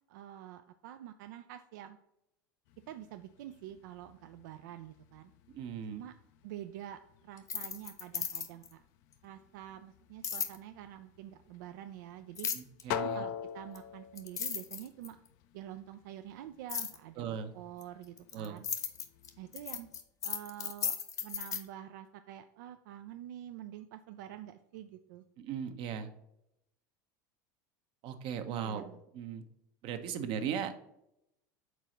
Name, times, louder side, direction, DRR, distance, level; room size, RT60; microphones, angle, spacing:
voice 1, 0.1-2.0 2.9-5.3 5.9-6.2 6.4-8.8 9.2-12.5 13.0-15.2 15.5-18.7 19.4-19.9 20.2-21.0 21.2-25.2 28.5-29.0, right 12 dB, 75° right, 9 dB, 0.4 m, -47 dB
sound 1, 2.7-20.0, left 9 dB, 65° left, 0.5 m, -47 dB
voice 2, 5.5-6.0 12.5-13.2 17.2-17.5 18.3-18.6 25.4-26.1 28.0-28.8 29.1-29.4 29.8-30.9, right 8 dB, 55° right, 8 dB, 0.8 m, -38 dB
sound 2, 7.4-8.7 10.2-10.6 12.4-12.8 13.8-13.9 14.2-15.3 16.7-17.0 17.8-21.6, left 7 dB, 35° left, 0.8 m, -36 dB
4.7 x 3.9 x 5.7 m, 0.82 s
hypercardioid pair, 90°, 10 cm